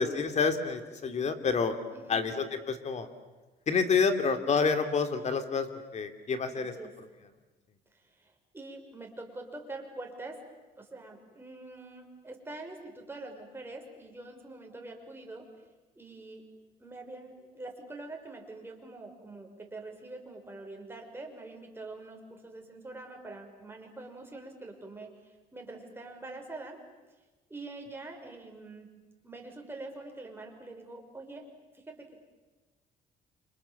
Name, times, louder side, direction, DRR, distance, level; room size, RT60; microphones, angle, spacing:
voice 1, 0.0-1.7 2.1-3.1 3.7-5.7 5.9-6.7, left 5 dB, 40° left, 9 dB, 2.9 m, -28 dB
voice 2, 1.9-2.3 6.5-6.9 8.0-10.4 10.8-15.5 16.0-16.5 16.8-25.1 25.5-26.8 27.5-28.9 29.2-31.4 31.7-32.2, right 2 dB, 15° right, 2 dB, 5.9 m, -45 dB
29.5 x 26.5 x 7.2 m, 1.2 s
cardioid pair, 110°, 17 cm